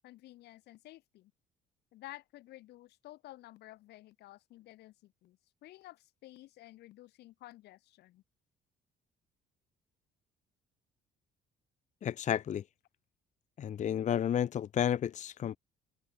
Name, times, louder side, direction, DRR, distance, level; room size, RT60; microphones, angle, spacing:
voice 1, 0.0-1.3 1.9-8.2, left 16 dB, 75° left, 2.9 m, -53 dB
voice 2, 12.0-12.6 13.6-15.6, left 9 dB, 45° left, 1.0 m, -31 dB
open air
cardioid pair, 110°, 17 cm